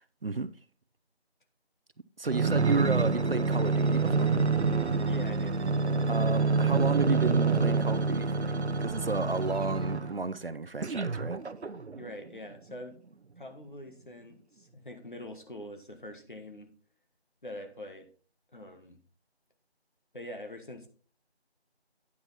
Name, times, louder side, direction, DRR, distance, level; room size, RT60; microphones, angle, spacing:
voice 1, 0.2-0.5 2.2-4.4 6.1-11.4, right 3 dB, 60° right, 0.6 m, -32 dB
sound 1, 2.3-10.2 10.8-12.1 12.7-12.8, right 4 dB, 90° right, 0.8 m, -27 dB
voice 2, 5.1-5.6 12.0-12.9 13.4-16.7 17.4-18.1 18.5-19.0 20.1-20.9, left 1 dB, 50° left, 1.6 m, -44 dB
9.9 x 6.0 x 4.2 m
figure-of-eight pair, 175°, 33 cm